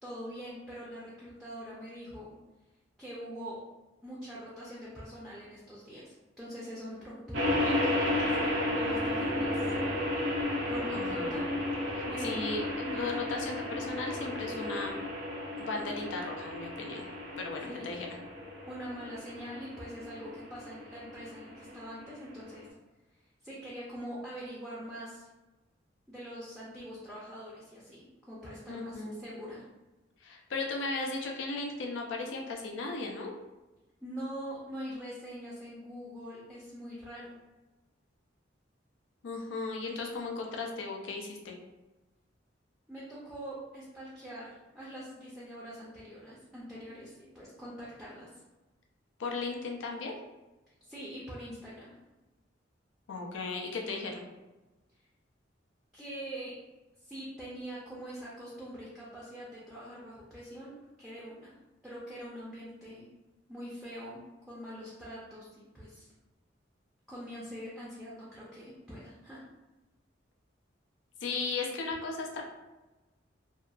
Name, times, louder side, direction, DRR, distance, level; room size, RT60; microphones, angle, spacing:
voice 1, 0.0-2.4 3.0-3.6 4.0-9.7 10.7-11.5 11.8-12.3 12.8-13.1 17.6-17.9 18.7-22.7 23.4-25.3 26.1-29.7 34.0-37.4 42.9-48.3 50.8-51.9 55.9-56.5 57.0-60.7 61.0-61.5 61.8-63.1 63.5-64.2 64.5-66.1 67.1-69.4, equal, ahead, -7 dB, 0.4 m, -43 dB
sound 1, 7.3-22.6, left 1 dB, 85° right, 0.6 m, -33 dB
voice 2, 10.9-11.4 11.9-12.6 12.9-15.0 15.6-17.1 17.4-18.1 28.7-29.2 30.2-33.3 39.2-41.5 49.2-50.2 53.1-54.2 71.2-72.4, left 3 dB, 80° left, 1 dB, 0.4 m, -36 dB
2.7 x 2.2 x 2.3 m, 1.1 s
head